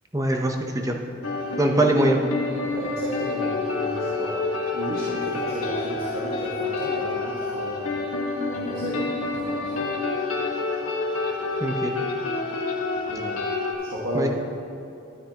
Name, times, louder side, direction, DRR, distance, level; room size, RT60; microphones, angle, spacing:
voice 1, 0.1-1.0 1.6-2.2 11.6-11.9 14.1-14.3, right 1 dB, 15° right, 2 dB, 0.7 m, -22 dB
sound 1, 1.2-13.7, left 3 dB, 85° left, 1.4 m, -28 dB
voice 2, 2.7-4.4 4.7-8.0 8.5-10.0 13.1-13.4 13.8-14.3, right 1 dB, 75° right, -6 dB, 1.6 m, -34 dB
12.5 x 9.4 x 2.9 m, 2.9 s
head